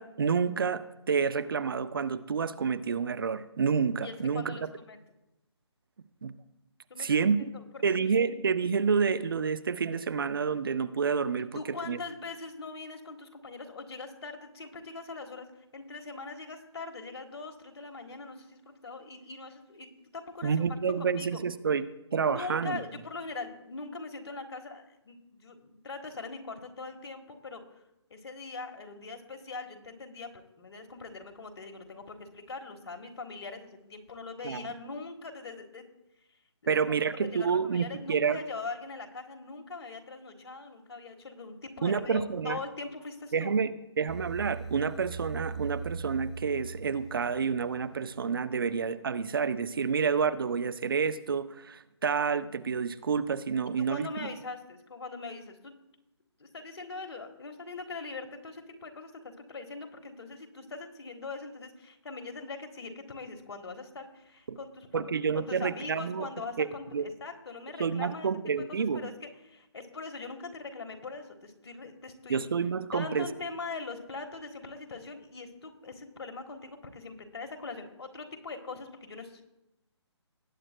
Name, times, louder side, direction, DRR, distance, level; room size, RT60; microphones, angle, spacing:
voice 1, 0.0-4.6 6.2-6.3 7.0-7.5 7.8-11.6 11.9-12.0 20.4-21.8 22.1-22.8 34.4-34.7 36.7-38.4 41.8-42.6 43.3-54.3 64.5-64.6 64.9-66.3 66.6-66.7 66.9-67.1 67.8-69.1 72.3-73.3, right 6 dB, 50° right, 14 dB, 0.6 m, -29 dB
voice 2, 4.0-5.0 6.9-7.2 7.5-7.6 7.9-8.0 11.5-15.5 15.7-20.6 21.0-21.4 22.2-27.6 28.1-35.8 36.6-36.8 37.3-43.5 53.8-55.7 56.4-59.1 59.4-68.3 68.6-68.7 68.9-72.4 72.9-79.4, left 3 dB, 60° left, 6 dB, 1.5 m, -42 dB
sound 1, 44.1-48.2, right 5 dB, ahead, 0.9 m, -40 dB
19.0 x 8.8 x 2.2 m, 0.90 s
hypercardioid pair, 160°, 15 cm